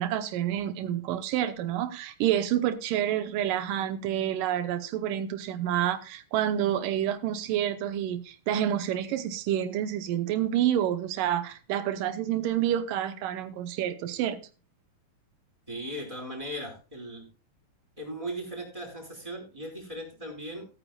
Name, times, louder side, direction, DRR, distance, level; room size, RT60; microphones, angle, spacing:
voice 1, 0.0-14.4, right 11 dB, 85° right, 9 dB, 2.5 m, -28 dB
voice 2, 15.7-17.3 18.0-20.7, right 1 dB, 10° right, 2 dB, 4.5 m, -38 dB
17.0 x 9.0 x 2.3 m, 0.33 s
omnidirectional pair, 3.7 m